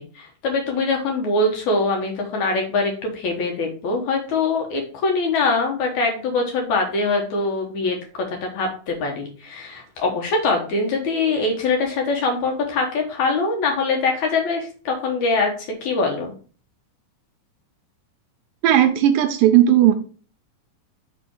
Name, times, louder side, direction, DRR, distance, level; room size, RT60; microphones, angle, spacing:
voice 1, 0.0-16.3, left 3 dB, 65° left, 2 dB, 2.2 m, -23 dB
voice 2, 18.6-19.9, right 11 dB, 80° right, 7 dB, 2.2 m, -15 dB
5.5 x 5.1 x 4.5 m, 0.38 s
omnidirectional pair, 4.2 m